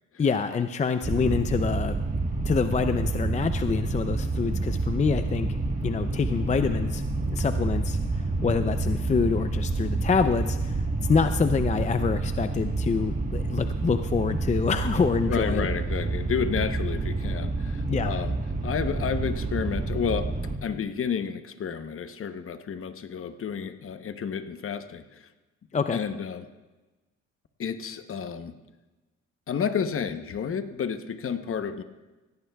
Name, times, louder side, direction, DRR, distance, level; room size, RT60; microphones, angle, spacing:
voice 1, 0.2-2.0 2.4-5.6 5.8-7.0 7.3-15.7 17.9-18.2 25.7-26.0, left 5 dB, 25° left, 9 dB, 0.5 m, -26 dB
sound 1, 1.0-20.6, right 3 dB, 25° right, 1.3 m, -28 dB
voice 2, 15.3-18.3 18.6-20.3 20.6-25.2 25.9-26.5 27.6-28.5 29.5-31.8, left 7 dB, 45° left, 9 dB, 0.9 m, -31 dB
17.5 x 15.0 x 2.3 m, 1.2 s
cardioid pair, 90°, 30 cm